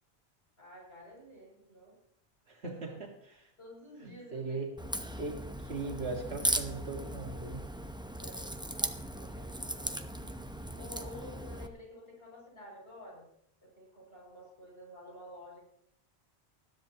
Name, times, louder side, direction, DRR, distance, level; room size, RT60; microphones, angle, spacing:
voice 1, 0.6-1.9 2.6-2.7 3.6-4.6 8.2-8.5 9.1-10.3 10.8-13.3 13.6-15.7, left 1 dB, 75° left, -3 dB, 6.8 m, -50 dB
voice 2, 2.5-3.1 3.4-3.5 4.0-4.7 5.2-7.7, right 3 dB, 80° right, 0 dB, 2.1 m, -39 dB
Crack, 4.8-11.7, right 1 dB, 5° right, 0.7 m, -37 dB
20.5 x 13.5 x 2.9 m, 0.70 s
omnidirectional pair, 1.1 m